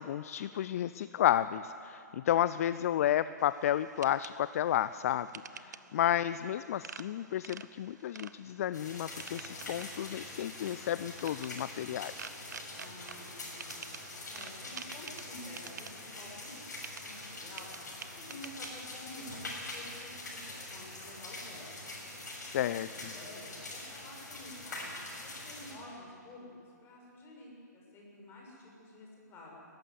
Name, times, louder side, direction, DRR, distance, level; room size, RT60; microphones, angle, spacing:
voice 1, 0.0-5.3 5.6-12.1 22.4-23.1, left 11 dB, 50° left, 15 dB, 0.4 m, -32 dB
sound 1, 3.4-20.1, right 6 dB, 70° right, 0.8 m, -51 dB
sound 2, 8.7-25.7, left 2 dB, 70° left, 6.7 m, -44 dB
voice 2, 12.8-13.9 14.3-17.7 18.2-21.8 22.9-26.5 26.8-29.7, left 1 dB, 25° left, -2 dB, 6.5 m, -50 dB
20.0 x 14.5 x 9.7 m, 2.6 s
figure-of-eight pair, 120°, 10 cm